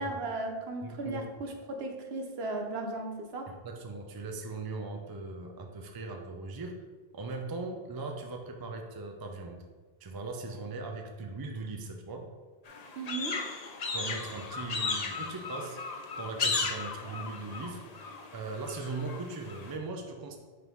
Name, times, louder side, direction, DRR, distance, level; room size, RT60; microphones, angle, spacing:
voice 1, 0.0-3.5 13.0-13.4, right 2 dB, 70° right, 4 dB, 1.0 m, -36 dB
voice 2, 0.8-1.2 3.6-6.8 7.1-9.6 10.0-12.3 13.9-15.8 16.2-17.8 18.3-20.4, right 3 dB, 30° right, 3 dB, 0.4 m, -39 dB
sound 1, 12.7-19.7, left 4 dB, 45° left, 0.6 m, -36 dB
9.3 x 3.6 x 3.1 m, 1.4 s
omnidirectional pair, 1.1 m